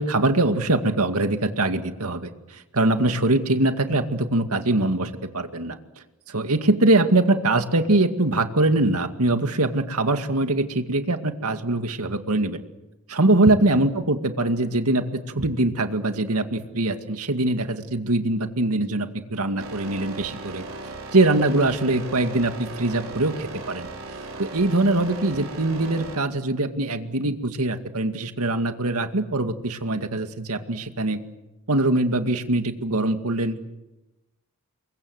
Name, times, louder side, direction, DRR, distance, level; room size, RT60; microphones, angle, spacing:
voice 1, 0.0-5.8 6.3-12.6 13.1-15.0 15.3-20.6 21.1-23.9 24.4-31.2 31.7-33.7, right 2 dB, 80° right, 7 dB, 2.2 m, -23 dB
sound 1, 19.6-26.1, right 3 dB, 65° right, 5.9 m, -37 dB
29.5 x 23.5 x 8.0 m, 1.0 s
head